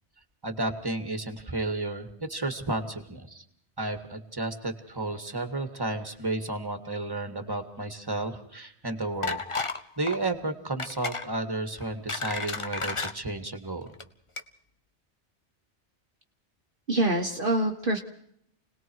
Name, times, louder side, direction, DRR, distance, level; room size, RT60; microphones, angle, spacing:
voice 1, 0.4-3.4 3.8-9.4 10.0-13.9, right 2 dB, 20° right, 8 dB, 2.1 m, -32 dB
sound 1, 9.2-9.8 10.1-10.3 10.8-11.3 11.8-13.1 13.9-14.0 14.4-14.5, left 4 dB, 30° left, 1.1 m, -32 dB
voice 2, 16.9-18.0, right 1 dB, 50° right, 2 dB, 1.5 m, -25 dB
29.5 x 19.5 x 4.7 m, 0.69 s
omnidirectional pair, 1.2 m